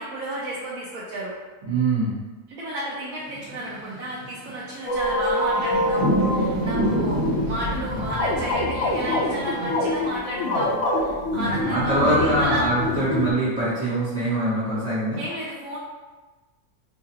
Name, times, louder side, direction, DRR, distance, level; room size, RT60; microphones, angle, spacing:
voice 1, 0.0-1.3 2.5-12.7 15.2-15.8, right 1 dB, 75° right, -6 dB, 1.1 m, -32 dB
voice 2, 1.6-2.2 11.3-15.2, right 2 dB, 35° right, -11 dB, 0.9 m, -23 dB
sound 1, 3.2-10.1, right 1 dB, 50° right, 1.6 m, -30 dB
sound 2, 4.9-13.3, left 1 dB, 65° left, 0.9 m, -26 dB
sound 3, 4.9-10.5 10.8-13.1, equal, 30° left, 0.9 m, -34 dB
4.6 x 2.3 x 2.8 m, 1.3 s
omnidirectional pair, 1.5 m